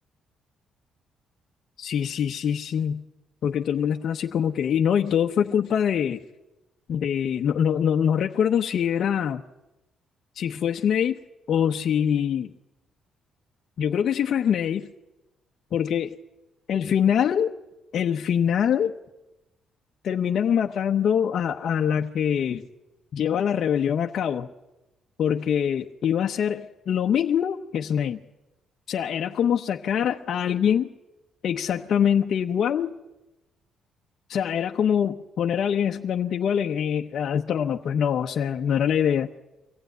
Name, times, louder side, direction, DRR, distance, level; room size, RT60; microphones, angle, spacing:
voice 1, 1.8-3.0 3.4-6.2 6.9-9.4 10.3-11.2 11.5-12.5 13.8-14.9 15.7-16.2 16.7-17.5 17.9-18.9 20.0-22.7 23.1-24.5 25.2-28.2 28.9-30.9 31.4-32.9 34.3-39.3, left 8 dB, 65° left, 0.9 m, -24 dB
24.0 x 16.0 x 9.3 m
cardioid pair, 90°, 0 cm